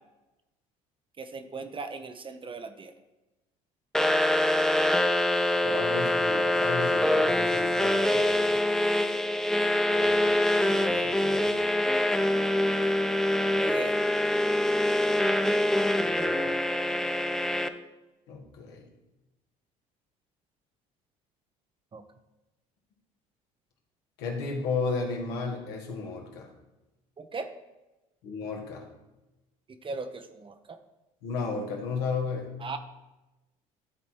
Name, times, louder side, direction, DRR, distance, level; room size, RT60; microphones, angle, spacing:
voice 1, 1.2-2.9 13.5-14.0 21.9-22.0 27.2-27.5 29.8-30.8 32.6-32.8, right 4 dB, 30° right, 8 dB, 0.8 m, -38 dB
sound 1, 3.9-17.7, left 1 dB, 5° left, 0.5 m, -25 dB
voice 2, 5.6-8.6 9.9-11.5 16.0-16.5 18.3-18.8 24.2-26.5 28.2-28.8 31.2-32.5, left 4 dB, 75° left, 1 dB, 1.6 m, -34 dB
12.0 x 4.1 x 4.5 m, 1.0 s
hypercardioid pair, 70°, 17 cm